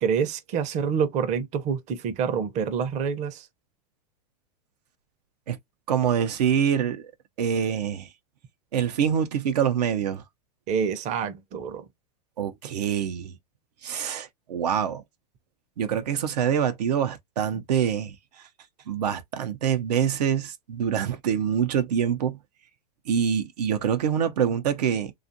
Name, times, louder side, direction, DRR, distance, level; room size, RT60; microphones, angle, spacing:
voice 1, 0.0-3.5 10.7-11.9 17.5-17.6, right 7 dB, 35° right, 0.6 m, -27 dB
voice 2, 5.9-7.1 7.4-8.1 8.7-10.2 12.4-13.4 13.8-15.0 15.8-18.5 18.9-22.4 23.1-25.1, right 8 dB, 80° right, 0.6 m, -25 dB
2.5 x 2.4 x 2.6 m
hypercardioid pair, 115°, 20 cm